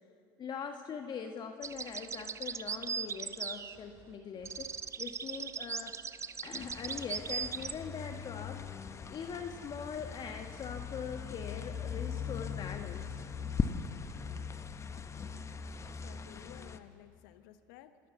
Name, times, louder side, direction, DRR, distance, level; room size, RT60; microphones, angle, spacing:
voice 1, 0.4-4.7 5.0-6.0 6.4-8.6 9.1-13.2, left 6 dB, 40° left, 5 dB, 1.4 m, -42 dB
sound 1, 1.6-4.1 4.4-7.7, right 6 dB, 25° right, 0.6 m, -39 dB
sound 2, 6.6-16.8, left 6 dB, 25° left, 1.1 m, -40 dB
voice 2, 15.8-18.0, left 12 dB, 75° left, 11 dB, 1.2 m, -55 dB
26.5 x 12.5 x 8.3 m, 2.7 s
hypercardioid pair, 85°, 11 cm